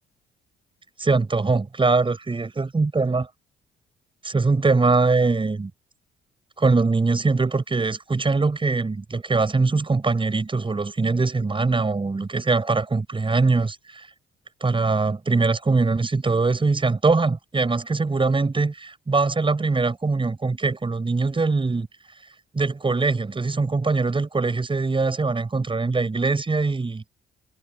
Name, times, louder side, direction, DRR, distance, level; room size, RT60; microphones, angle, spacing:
voice 1, 1.0-3.3 4.2-5.7 6.6-14.1 14.6-21.9 22.5-27.0, right 3 dB, 25° right, 7.1 m, -22 dB
cardioid pair, 90°, 20 cm